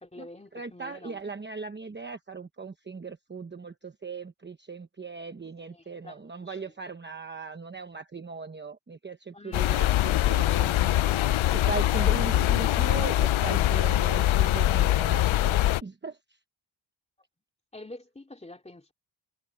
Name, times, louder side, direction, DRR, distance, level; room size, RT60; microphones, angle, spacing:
voice 1, 0.0-1.2 5.6-6.7 9.3-9.9 17.7-18.9, left 2 dB, 15° left, 2.9 m, -47 dB
voice 2, 0.5-11.0 11.5-16.2, right 4 dB, 25° right, 0.9 m, -38 dB
sound 1, 9.5-15.8, left 14 dB, 80° left, 0.6 m, -23 dB
wide cardioid pair, 165°, 47 cm